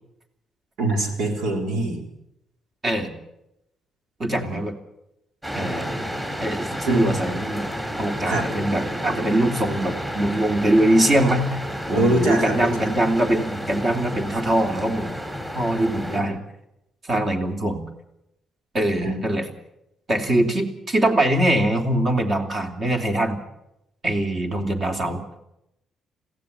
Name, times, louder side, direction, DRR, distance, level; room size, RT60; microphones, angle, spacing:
voice 1, 0.8-2.0 4.4-4.6 6.9-7.1 8.3-8.5 11.9-12.7 16.1-16.4 19.0-19.1, right 2 dB, 85° right, 3 dB, 4.3 m, -23 dB
voice 2, 4.2-4.8 5.5-5.9 6.4-7.7 8.0-11.6 11.9-15.2 15.5-16.4 17.0-17.8 18.7-19.5 20.1-23.4 24.0-25.2, right 1 dB, 40° right, 4 dB, 3.3 m, -22 dB
sound 1, 5.4-16.2, equal, 15° right, 5.2 m, -31 dB
22.5 x 16.0 x 8.3 m, 0.84 s
cardioid pair, 90°, 0 cm